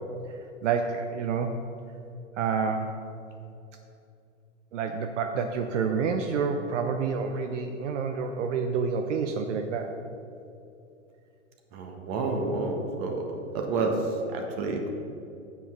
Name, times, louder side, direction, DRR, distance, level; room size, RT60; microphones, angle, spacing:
voice 1, 0.3-1.6 2.4-3.0 4.7-9.9, right 5 dB, 70° right, 5 dB, 0.7 m, -28 dB
voice 2, 11.7-14.0 14.3-14.9, right 3 dB, 50° right, 2 dB, 1.4 m, -29 dB
7.2 x 5.6 x 6.1 m, 2.7 s
hypercardioid pair, 110°, 38 cm